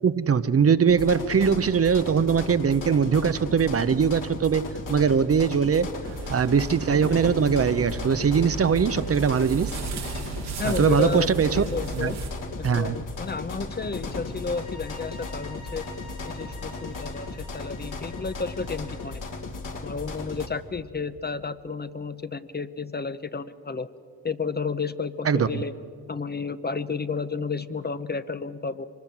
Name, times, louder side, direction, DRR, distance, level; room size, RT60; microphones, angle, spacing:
voice 1, 0.0-5.9 6.3-9.7 10.6-11.6 11.9-12.1 12.6-13.0 25.2-25.5, right 6 dB, 40° right, 13 dB, 0.8 m, -21 dB
sound 1, 0.9-20.5, left 3 dB, 55° left, 2.0 m, -36 dB
sound 2, 6.0-12.3, right 4 dB, 85° right, 2.6 m, -35 dB
voice 2, 10.6-12.2 12.8-15.8 16.2-19.2 19.8-23.9 24.2-25.7 26.1-28.8, left 4 dB, 25° left, 12 dB, 0.8 m, -31 dB
sound 3, 14.2-19.3, left 2 dB, 70° left, 4.9 m, -48 dB
24.0 x 20.0 x 6.0 m, 2.4 s
supercardioid pair, 50°, 38 cm